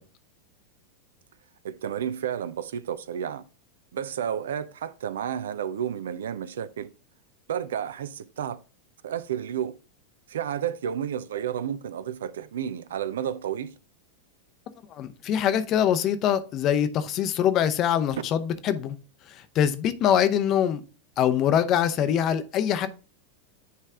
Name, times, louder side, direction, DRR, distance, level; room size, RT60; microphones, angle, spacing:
voice 1, 1.6-3.4 3.9-6.9 7.5-8.6 9.0-9.7 10.3-13.7, right 9 dB, 60° right, 0.4 m, -31 dB
voice 2, 14.9-19.0 19.3-20.8 21.2-22.9, left 9 dB, 35° left, 0.7 m, -24 dB
9.4 x 3.2 x 3.6 m
figure-of-eight pair, 90°, 0 cm